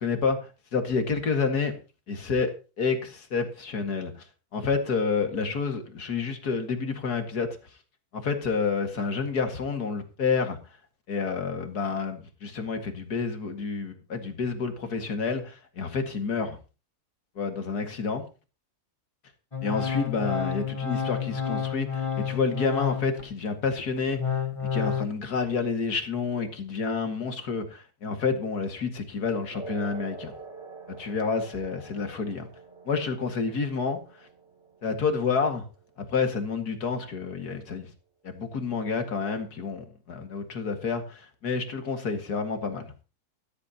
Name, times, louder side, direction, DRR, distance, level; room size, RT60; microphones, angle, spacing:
voice 1, 0.0-1.7 2.1-2.5 2.8-4.3 4.5-7.5 8.1-10.7 11.1-16.6 17.4-18.3 19.6-24.4 24.7-30.3 30.9-32.5 32.9-34.3 34.8-35.6 36.1-37.9 38.2-42.9, left 5 dB, 75° left, 2.6 m, -29 dB
Organ, 19.5-23.3 23.8-25.1, left 7 dB, 20° left, 1.1 m, -30 dB
sound 1, 29.5-36.5, right 3 dB, 40° right, 3.2 m, -46 dB
16.5 x 12.5 x 2.9 m
omnidirectional pair, 1.7 m